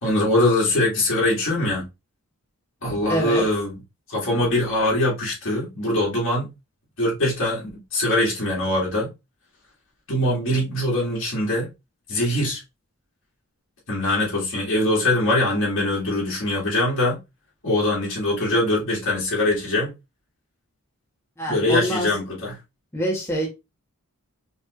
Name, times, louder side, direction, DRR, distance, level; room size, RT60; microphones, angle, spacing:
voice 1, 0.0-1.8 2.8-3.7 4.1-6.5 7.0-9.1 10.1-11.7 12.1-12.6 13.9-17.2 17.6-19.9 21.5-22.5, left 1 dB, 60° left, 2.3 m, -22 dB
voice 2, 3.1-3.5 21.4-22.1 22.9-23.5, right 1 dB, 10° left, 1.2 m, -25 dB
5.3 x 3.2 x 2.5 m
head